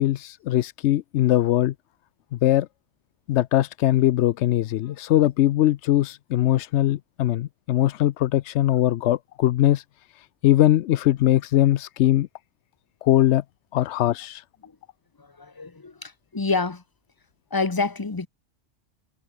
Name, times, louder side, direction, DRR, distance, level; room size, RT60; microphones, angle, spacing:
voice 1, 0.0-1.7 2.3-2.7 3.3-9.8 10.1-12.3 13.0-13.4 13.7-14.4, left 13 dB, 90° left, 0.9 m, -21 dB
voice 2, 15.2-16.8 17.5-18.3, left 3 dB, 20° left, 1.0 m, -27 dB
omnidirectional pair, 1.1 m